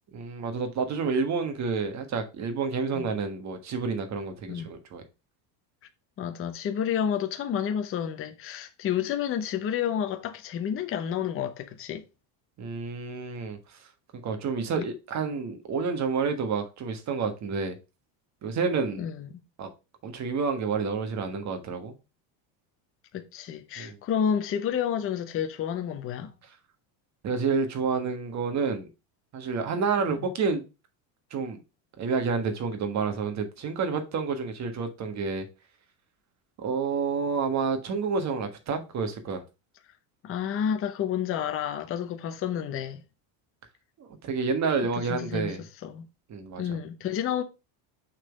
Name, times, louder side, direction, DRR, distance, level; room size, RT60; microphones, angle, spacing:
voice 1, 0.1-5.0 12.6-13.9 14.1-17.8 18.4-19.0 19.6-19.7 20.0-21.9 23.8-24.0 27.2-28.9 29.3-30.6 31.3-31.6 32.0-35.4 36.6-39.4 44.0-45.6 46.3-46.6, right 5 dB, 35° right, 1.4 m, -29 dB
voice 2, 6.2-12.0 14.8-14.9 19.0-19.3 23.1-26.3 30.1-30.2 40.2-43.0 45.1-46.1 46.6-47.4, left 8 dB, 25° left, 0.7 m, -30 dB
6.4 x 4.0 x 5.1 m
cardioid pair, 150°, 49 cm